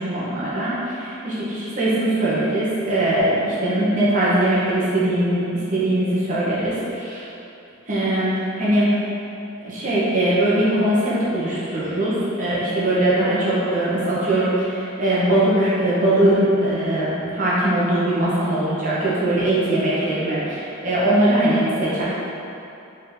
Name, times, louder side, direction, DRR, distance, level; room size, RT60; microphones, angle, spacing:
voice 1, 0.0-7.2 7.9-8.3 8.6-8.9 9.6-22.0, right 1 dB, 35° right, -9 dB, 1.0 m, -21 dB
3.9 x 3.8 x 2.7 m, 2.8 s
head